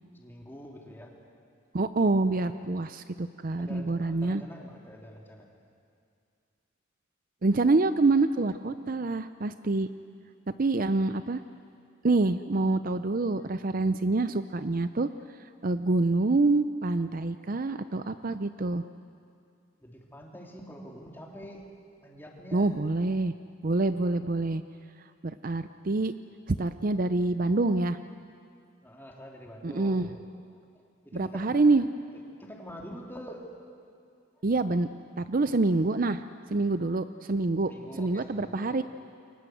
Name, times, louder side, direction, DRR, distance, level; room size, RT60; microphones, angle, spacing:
voice 1, 0.1-1.1 3.6-5.5 17.6-18.1 19.8-21.7 22.0-22.8 28.8-30.2 31.0-31.8 32.4-33.5 37.7-38.8, equal, 10° left, -1 dB, 3.3 m, -45 dB
voice 2, 1.7-4.4 7.4-9.9 10.6-11.4 12.0-15.1 15.6-18.8 22.5-23.3 23.6-24.6 25.2-26.1 26.5-28.0 29.6-30.1 31.1-31.9 34.4-34.9 35.2-36.2 36.5-37.7 38.0-38.8, right 3 dB, 45° right, 11 dB, 0.6 m, -26 dB
28.5 x 24.0 x 7.9 m, 2.4 s
head